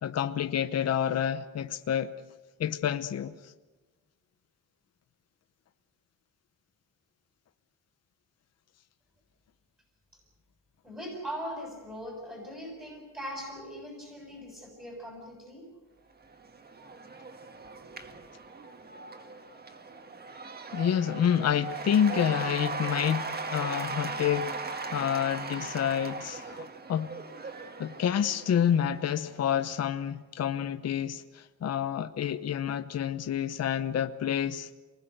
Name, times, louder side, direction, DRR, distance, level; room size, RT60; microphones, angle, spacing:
voice 1, 0.0-2.1 2.6-3.5 20.7-27.1 27.8-34.7, left 9 dB, 50° left, 9 dB, 0.9 m, -28 dB
voice 2, 10.8-15.7, equal, 5° right, -1 dB, 6.3 m, -40 dB
Cheering / Applause / Crowd, 16.2-29.7, right 4 dB, 30° right, 1.6 m, -39 dB
28.0 x 20.0 x 8.0 m, 1.3 s
wide cardioid pair, 170°, 33 cm